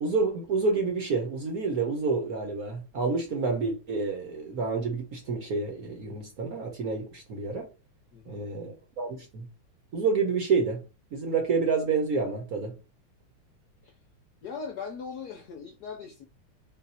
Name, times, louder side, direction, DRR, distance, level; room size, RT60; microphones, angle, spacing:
voice 1, 0.0-7.7 8.3-9.5 9.9-10.8 11.1-12.7, right 4 dB, 55° right, 1.1 m, -28 dB
voice 2, 8.1-8.5 13.8-13.9 14.4-16.2, left 5 dB, 65° left, 1.0 m, -39 dB
4.1 x 2.4 x 4.0 m
omnidirectional pair, 2.3 m